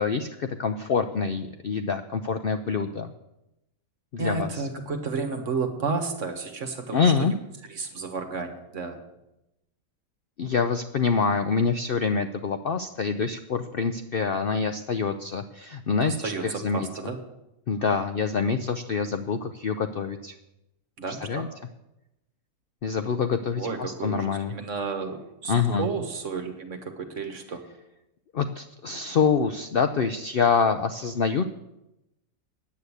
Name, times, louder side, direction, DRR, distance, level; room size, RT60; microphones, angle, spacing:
voice 1, 0.0-3.1 4.1-4.6 6.9-7.3 10.4-16.9 17.7-20.3 21.1-21.5 22.8-24.6 25.5-25.9 28.3-31.4, left 5 dB, 60° left, 9 dB, 0.6 m, -26 dB
voice 2, 4.2-7.3 7.7-9.0 16.0-17.2 21.0-21.5 23.6-27.6, right 4 dB, 55° right, 6 dB, 1.7 m, -32 dB
9.8 x 7.9 x 8.4 m, 0.91 s
omnidirectional pair, 1.6 m